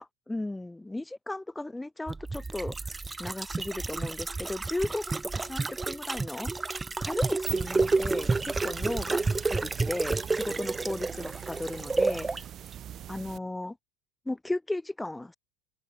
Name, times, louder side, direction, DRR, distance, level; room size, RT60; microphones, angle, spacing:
voice 1, 0.0-2.9 3.2-6.5 7.0-12.3 13.1-13.8 14.3-15.4, left 2 dB, 10° left, 3.8 m, -35 dB
sound 1, 2.1-12.4 12.7-12.8, right 3 dB, 15° right, 0.6 m, -30 dB
sound 2, 7.2-13.4, right 11 dB, 45° right, 5.6 m, -43 dB
open air
hypercardioid pair, 85°, 0 cm